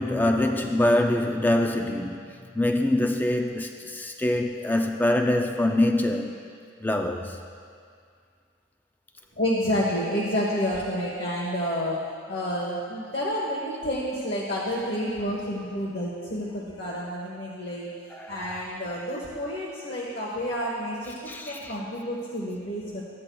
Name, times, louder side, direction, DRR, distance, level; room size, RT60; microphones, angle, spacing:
voice 1, 0.0-2.2 2.5-6.4 6.8-7.4 18.1-18.6 21.3-21.8, left 1 dB, 10° left, 4 dB, 0.4 m, -24 dB
voice 2, 9.3-17.9 18.3-23.0, equal, 50° left, -5 dB, 1.2 m, -29 dB
14.5 x 9.6 x 2.3 m, 2.2 s
head